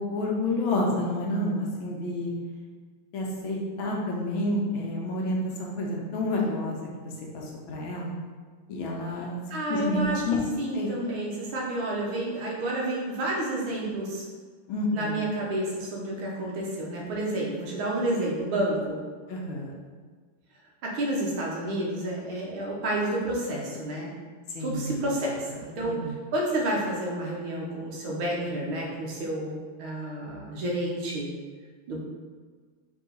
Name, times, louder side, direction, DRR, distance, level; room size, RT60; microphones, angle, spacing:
voice 1, 0.0-2.3 3.1-6.9 7.3-8.1 8.7-9.4 9.7-10.4 10.7-10.9 14.7-15.2 19.3-19.7 24.5-24.9 25.8-26.1, left 1 dB, 75° left, -2 dB, 1.4 m, -29 dB
voice 2, 9.5-14.3 14.9-19.0 20.8-24.1 24.6-26.0 26.3-31.3 31.9-32.0, right 1 dB, 75° right, -3 dB, 1.7 m, -30 dB
4.6 x 2.8 x 3.9 m, 1.5 s
omnidirectional pair, 2.4 m